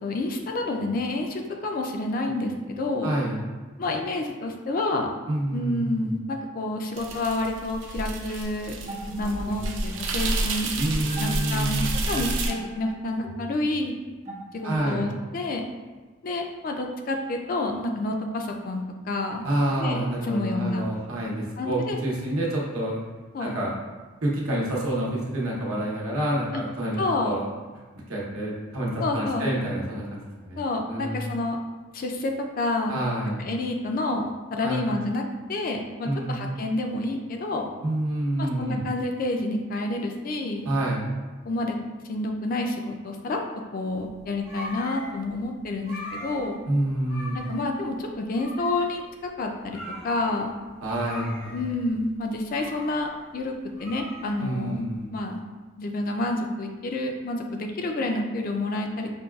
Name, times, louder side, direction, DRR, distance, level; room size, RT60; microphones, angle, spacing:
voice 1, 0.0-3.1 3.8-5.1 5.5-8.7 9.2-10.7 11.2-14.0 14.5-15.7 16.2-19.4 19.8-20.9 21.6-22.0 23.3-23.6 26.5-26.6 27.0-27.4 29.0-29.5 30.6-31.6 31.9-33.0 33.4-35.2 35.5-37.7 38.4-40.7 41.5-41.8 42.1-43.4 43.7-46.6 47.3-50.5 51.5-53.5 53.8-54.8 55.1-55.4 55.8-59.1, left 2 dB, 40° left, 3 dB, 0.3 m, -29 dB
voice 2, 3.0-3.4 5.3-6.1 10.8-11.9 14.6-15.1 19.4-23.0 23.4-23.7 24.2-27.5 28.1-31.2 32.9-33.4 34.6-34.8 36.0-36.3 37.8-38.8 40.6-41.1 46.7-47.4 50.8-51.6 54.4-55.1, right 1 dB, 85° right, -4 dB, 0.9 m, -28 dB
sound 1, 7.0-12.5, right 2 dB, 60° right, 0.4 m, -30 dB
sound 2, 8.9-15.0, right 1 dB, 35° right, 0.7 m, -40 dB
sound 3, 43.9-54.9, left 1 dB, 85° left, 0.9 m, -42 dB
5.3 x 2.3 x 2.3 m, 1.3 s
head